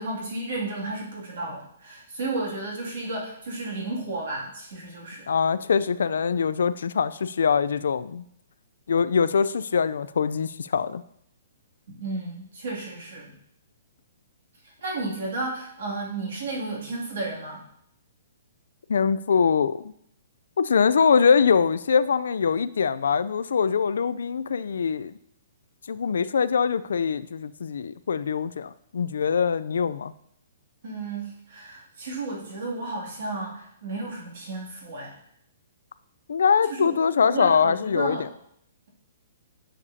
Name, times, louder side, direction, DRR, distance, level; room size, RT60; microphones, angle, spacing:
voice 1, 0.0-5.3 11.9-13.3 14.6-17.6 30.8-35.2 36.7-38.3, right 2 dB, 55° right, -3 dB, 2.4 m, -33 dB
voice 2, 5.3-8.2 8.9-11.0 18.9-19.9 20.6-25.1 25.9-30.1 36.3-38.3, left 6 dB, 75° left, 15 dB, 0.4 m, -23 dB
9.8 x 6.7 x 2.7 m, 0.71 s
hypercardioid pair, 175°, 0 cm